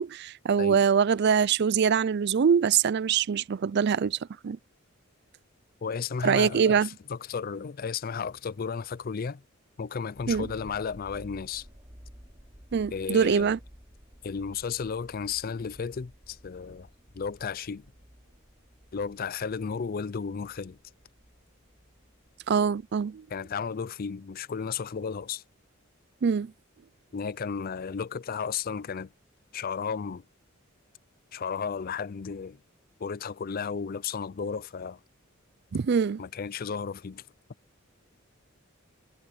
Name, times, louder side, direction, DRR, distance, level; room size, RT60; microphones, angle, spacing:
voice 1, 0.0-4.2 4.4-4.6 6.2-6.9 10.3-10.5 12.7-13.6 22.5-23.2 26.2-26.5 35.7-36.2, right 6 dB, 50° right, 0.4 m, -24 dB
voice 2, 5.8-9.4 9.8-11.7 12.9-13.5 14.2-16.9 17.1-17.8 18.9-20.8 23.3-25.4 27.1-29.1 29.5-30.2 31.3-32.6 33.0-35.0 36.2-37.2, left 6 dB, 45° left, 0.4 m, -33 dB
sound 1, 10.1-24.3 24.9-25.0, equal, 20° right, 3.6 m, -53 dB
head